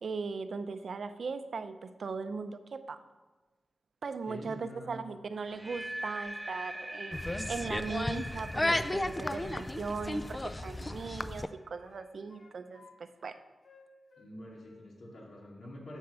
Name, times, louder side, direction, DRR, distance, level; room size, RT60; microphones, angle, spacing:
voice 1, 0.0-3.0 4.0-13.4, right 4 dB, 65° right, 10 dB, 0.6 m, -39 dB
voice 2, 4.3-5.0 14.2-16.0, left 1 dB, 80° left, -3 dB, 2.9 m, -47 dB
sound 1, 5.4-11.4, right 1 dB, 5° right, 0.8 m, -43 dB
sound 2, 7.1-11.5, left 1 dB, 15° left, 0.4 m, -34 dB
Wind instrument woodwind instrument, 8.3-11.1 11.4-12.9 13.2-14.3 14.6-14.9, left 4 dB, 65° left, 1.2 m, -59 dB
12.0 x 4.5 x 6.8 m, 1.2 s
wide cardioid pair, 100°, 0 cm